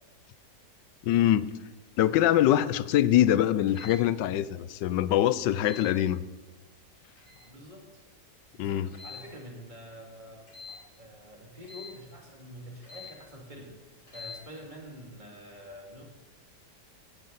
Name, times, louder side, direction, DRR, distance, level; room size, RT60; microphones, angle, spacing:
voice 1, 1.0-1.5 2.0-6.2 8.6-8.9, left 12 dB, 90° left, 1.3 m, -24 dB
sound 1, 3.7-4.0 5.6-5.9 7.2-7.5 8.9-9.3 10.5-10.8 11.6-11.9 12.8-13.1 14.1-14.4, left 5 dB, 70° left, 5.5 m, -44 dB
voice 2, 7.4-8.0 8.5-10.5 11.0-16.0, equal, 25° right, 2.9 m, -47 dB
16.0 x 10.5 x 4.1 m
omnidirectional pair, 1.8 m